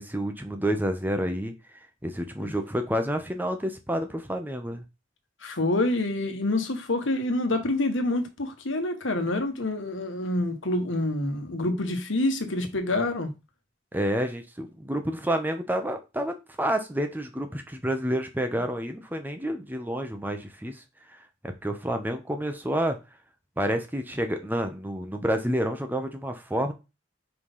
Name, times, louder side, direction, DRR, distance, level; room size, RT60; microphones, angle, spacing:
voice 1, 0.0-1.5 2.0-4.8 13.9-20.8 21.1-23.0 23.6-26.7, equal, 10° right, 0.8 m, -29 dB
voice 2, 5.4-13.3, left 2 dB, 80° left, 1.4 m, -27 dB
5.0 x 4.1 x 5.4 m
head